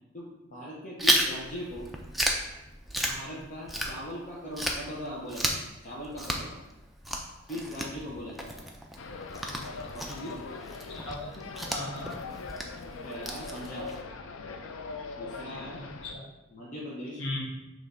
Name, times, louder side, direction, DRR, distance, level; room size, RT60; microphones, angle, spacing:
voice 1, 0.1-1.9 3.1-6.6 7.5-8.7 9.9-10.4 13.0-14.0 15.2-15.8 16.5-17.2, equal, 40° left, -5 dB, 0.7 m, -40 dB
Chewing mastication, 1.0-4.3 4.6-14.0, right 1 dB, ahead, 0.3 m, -33 dB
sound 1, 9.0-16.1, left 4 dB, 90° left, 0.4 m, -41 dB
voice 2, 10.9-12.2 15.7-16.3 17.2-17.5, left 2 dB, 65° left, -3 dB, 1.2 m, -37 dB
6.5 x 3.1 x 2.6 m, 0.97 s
head